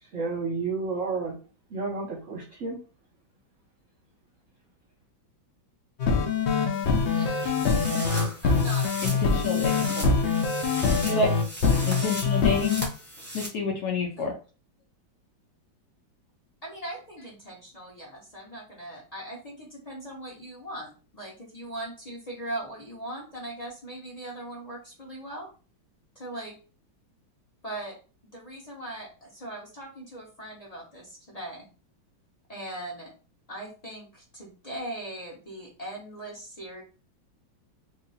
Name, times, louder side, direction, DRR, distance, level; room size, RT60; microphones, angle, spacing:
voice 1, 0.0-1.3 1.7-2.8 9.9-10.9, right 4 dB, 50° right, -1 dB, 1.0 m, -32 dB
sound 1, 6.0-12.9, left 5 dB, 90° left, 0.6 m, -24 dB
sound 2, 6.7-13.5, right 1 dB, 10° right, 0.6 m, -38 dB
voice 2, 7.1-7.4 8.4-9.1 14.2-14.3 16.6-25.5 26.1-26.6 27.6-27.9 28.3-31.7 32.5-33.1 33.5-36.8, right 1 dB, 25° left, -3 dB, 0.9 m, -39 dB
voice 3, 9.0-9.9 11.0-11.3 11.8-12.8 13.3-14.3, left 4 dB, 65° left, 1 dB, 1.1 m, -28 dB
2.9 x 2.8 x 4.0 m, 0.35 s
omnidirectional pair, 2.1 m